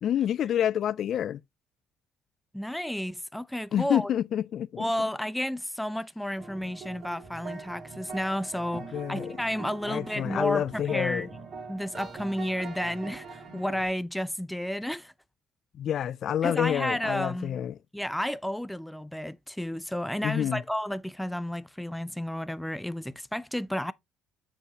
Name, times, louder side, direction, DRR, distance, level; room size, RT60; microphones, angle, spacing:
voice 1, 0.0-1.4 3.7-4.8 8.9-9.4 9.8-11.3 15.7-17.8 20.2-20.6, left 10 dB, 60° left, 0.4 m, -28 dB
voice 2, 2.5-4.1 4.8-11.3 11.7-15.1 16.4-17.6 17.9-23.9, equal, 5° left, 0.5 m, -32 dB
sound 1, 6.4-13.9, right 4 dB, 50° right, 2.4 m, -42 dB
6.9 x 5.3 x 2.9 m
supercardioid pair, 75°, 0 cm